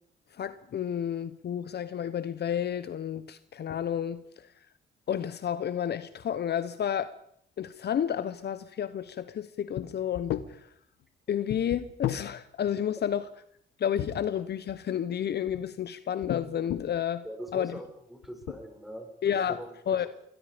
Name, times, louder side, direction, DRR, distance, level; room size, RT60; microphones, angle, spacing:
voice 1, 0.4-4.2 5.1-7.1 7.6-10.6 11.3-13.3 13.8-17.2 17.5-17.8 19.2-19.6 19.9-20.1, left 9 dB, 55° left, 1.1 m, -31 dB
sound 1, 9.8-9.9 10.2-10.5 11.5-12.3 14.0-14.8 15.3-15.7 16.2-17.0 17.7-17.9 18.2-18.5, left 12 dB, 80° left, 1.4 m, -33 dB
voice 2, 17.2-19.8, equal, ahead, 7.0 m, -42 dB
27.5 x 22.5 x 5.3 m
cardioid pair, 90°, 20 cm